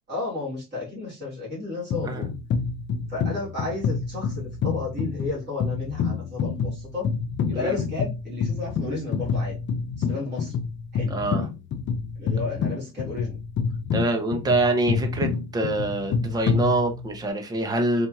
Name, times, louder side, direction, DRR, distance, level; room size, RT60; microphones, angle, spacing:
voice 1, 0.1-2.3 3.1-7.1 7.5-9.6 10.0-10.6 10.9-11.2 12.2-13.4, left 3 dB, 30° right, 2.4 m, -32 dB
sound 1, 1.9-17.3, left 5 dB, 35° left, 0.5 m, -28 dB
voice 2, 11.1-11.5 13.9-18.1, right 2 dB, 10° right, 0.6 m, -25 dB
4.2 x 2.5 x 2.8 m
cardioid pair, 145°, 34 cm